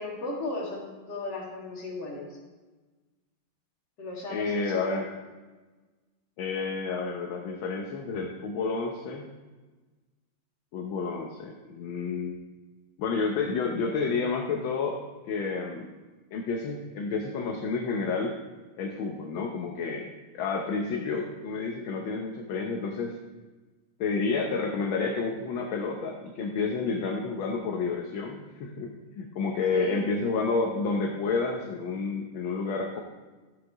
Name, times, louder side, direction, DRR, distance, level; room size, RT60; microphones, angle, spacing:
voice 1, 0.0-2.4 4.0-4.9 29.7-30.0, left 2 dB, 55° left, -2 dB, 2.5 m, -36 dB
voice 2, 4.3-5.1 6.4-9.2 10.7-12.4 13.0-15.0 15.3-15.9 16.3-18.4 18.8-20.1 20.3-23.2 24.0-28.9 29.1-33.0, left 4 dB, 75° left, 2 dB, 1.6 m, -30 dB
12.5 x 8.1 x 3.5 m, 1.3 s
omnidirectional pair, 2.2 m